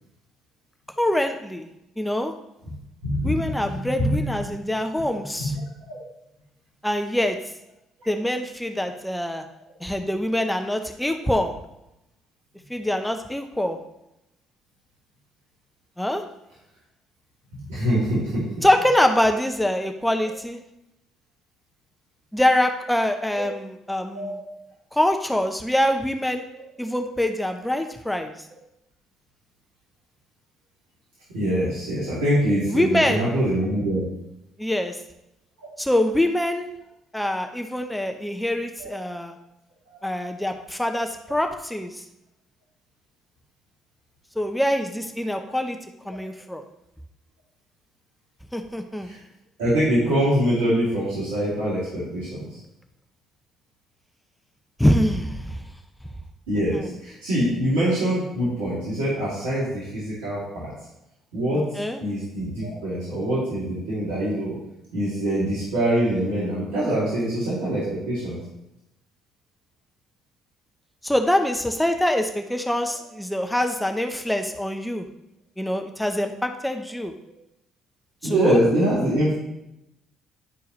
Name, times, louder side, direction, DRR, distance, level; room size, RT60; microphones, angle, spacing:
voice 1, 1.0-1.7 2.0-2.3 3.2-5.5 6.8-7.4 8.1-9.4 9.8-11.5 12.7-13.8 16.0-16.2 18.6-20.6 22.3-24.4 24.9-26.4 26.8-28.3 32.7-33.3 34.6-35.0 35.8-36.7 37.1-39.3 40.0-42.0 44.4-45.8 46.1-46.6 48.5-49.1 54.8-55.6 56.7-56.9 61.8-62.0 71.0-75.0 75.6-77.1 78.2-78.6, left 1 dB, 5° left, 5 dB, 0.9 m, -24 dB
voice 2, 3.0-4.2 5.4-5.5 5.9-6.0 17.5-18.4 23.3-23.4 24.1-24.3 26.5-26.6 31.3-34.0 38.8-38.9 49.0-49.2 49.6-52.5 56.5-60.7 61.3-61.7 62.0-64.6 64.9-68.4 73.5-73.7 78.2-79.4, right 1 dB, 80° right, -9 dB, 2.7 m, -24 dB
11.0 x 4.5 x 3.2 m, 0.85 s
hypercardioid pair, 55°, 0 cm